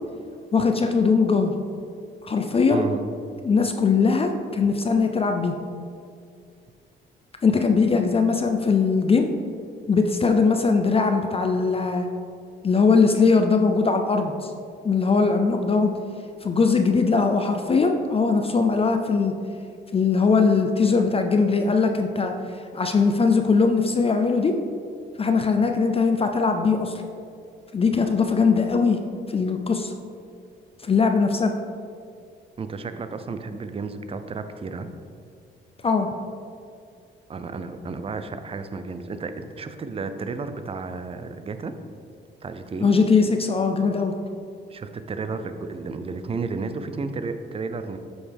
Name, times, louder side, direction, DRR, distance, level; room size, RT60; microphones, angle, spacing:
voice 1, 0.5-1.5 2.2-2.8 3.4-5.5 7.4-9.3 9.9-12.1 12.6-14.5 14.8-15.9 16.4-19.3 19.9-22.3 22.7-24.5 25.2-27.0 27.7-29.0 29.3-29.9 30.8-31.5 35.8-36.1 42.8-44.1, left 4 dB, 30° left, 5 dB, 0.5 m, -20 dB
voice 2, 2.6-3.0 32.6-34.9 37.3-41.7 42.4-42.9 44.7-48.0, right 4 dB, 30° right, 9 dB, 0.5 m, -32 dB
7.8 x 5.3 x 3.4 m, 2.3 s
cardioid pair, 90°, 20 cm